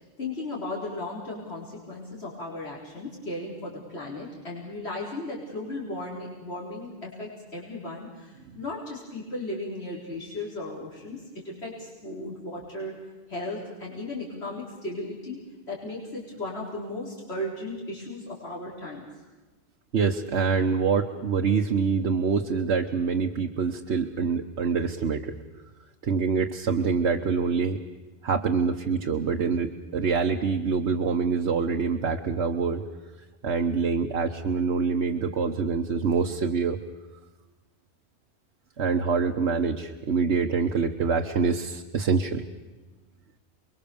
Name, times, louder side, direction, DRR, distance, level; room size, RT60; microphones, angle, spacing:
voice 1, 0.2-13.0 13.3-15.4 15.7-19.1, left 2 dB, 70° left, -4 dB, 4.6 m, -36 dB
voice 2, 19.9-25.3 26.0-27.8 28.2-32.9 33.4-36.8 38.8-42.4, right 5 dB, 80° right, 3 dB, 1.4 m, -25 dB
29.0 x 22.5 x 7.1 m, 1.2 s
omnidirectional pair, 1.1 m